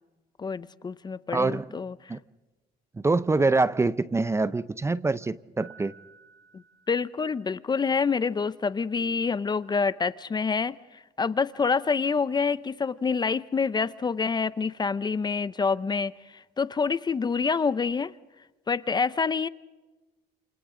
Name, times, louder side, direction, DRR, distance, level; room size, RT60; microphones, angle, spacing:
voice 1, 0.4-2.2 6.5-10.7 11.2-16.1 16.6-18.1 18.7-19.5, left 5 dB, 25° left, 0.6 m, -27 dB
voice 2, 1.3-1.7 2.1-2.2 3.0-6.0, right 3 dB, 15° right, 0.6 m, -25 dB
Piano, 5.6-7.7, right 5 dB, 85° right, 3.2 m, -54 dB
29.0 x 28.5 x 3.8 m
cardioid pair, 110°, 17 cm